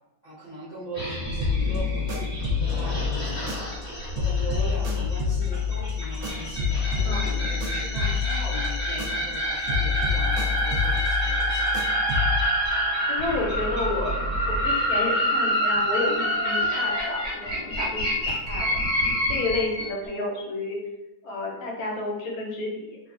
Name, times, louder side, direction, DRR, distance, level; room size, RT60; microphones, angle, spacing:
voice 1, 0.2-11.7, right 1 dB, 40° right, -11 dB, 0.6 m, -39 dB
sound 1, 0.9-19.9, equal, 25° left, 1.5 m, -27 dB
sound 2, 1.4-3.9 4.2-9.4 9.7-12.5, left 6 dB, 75° right, 1.0 m, -28 dB
voice 2, 7.0-7.4 13.1-14.2 14.5-18.7 19.3-20.8 21.2-23.0, left 2 dB, 80° left, -1 dB, 1.1 m, -31 dB
3.0 x 2.3 x 2.4 m, 1.0 s
omnidirectional pair, 1.5 m